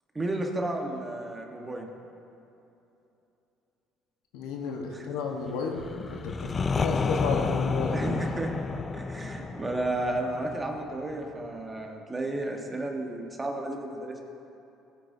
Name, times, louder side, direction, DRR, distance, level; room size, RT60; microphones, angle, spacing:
voice 1, 0.1-1.9 4.9-5.1 7.9-8.5 8.9-14.2, right 2 dB, 20° right, 2 dB, 1.2 m, -32 dB
voice 2, 4.3-5.8 6.1-8.1, left 4 dB, 85° left, 1 dB, 1.2 m, -32 dB
sound 1, 5.7-11.5, left 4 dB, 30° left, 0.3 m, -31 dB
15.5 x 9.1 x 2.7 m, 2.8 s
supercardioid pair, 95°, 0 cm